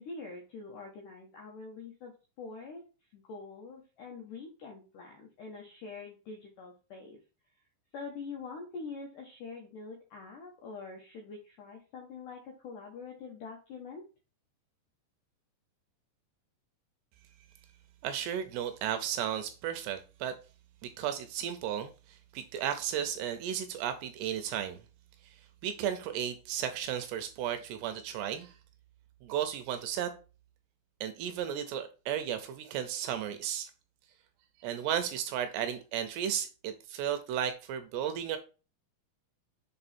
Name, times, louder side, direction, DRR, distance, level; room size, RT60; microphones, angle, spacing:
voice 1, 0.0-2.8 3.1-7.2 7.9-14.0, left 4 dB, 75° left, 1 dB, 1.9 m, -45 dB
voice 2, 18.0-20.3 20.8-21.9 22.3-24.8 25.6-28.5 29.2-30.1 31.0-33.7 34.6-38.4, right 9 dB, 80° right, 9 dB, 2.6 m, -34 dB
6.9 x 3.9 x 4.3 m, 0.34 s
omnidirectional pair, 5.2 m